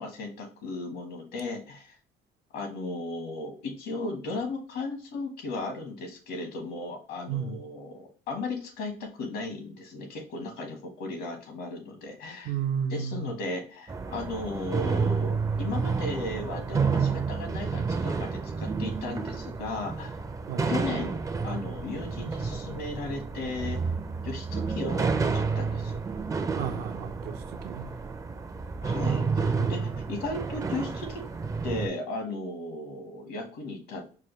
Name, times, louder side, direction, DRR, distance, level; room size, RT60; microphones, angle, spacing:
voice 1, 0.0-1.9 2.5-12.5 12.9-20.2 20.7-21.2 21.4-23.8 24.2-26.0 28.8-31.2 31.6-34.0, left 2 dB, 80° left, 1.3 m, -36 dB
voice 2, 7.3-7.6 12.4-13.4 20.5-20.7 26.6-27.9 29.6-29.7, right 7 dB, 75° right, 0.6 m, -33 dB
sound 1, 13.9-31.9, right 5 dB, 20° right, 0.4 m, -30 dB
4.6 x 2.2 x 3.1 m
cardioid pair, 110°, 17 cm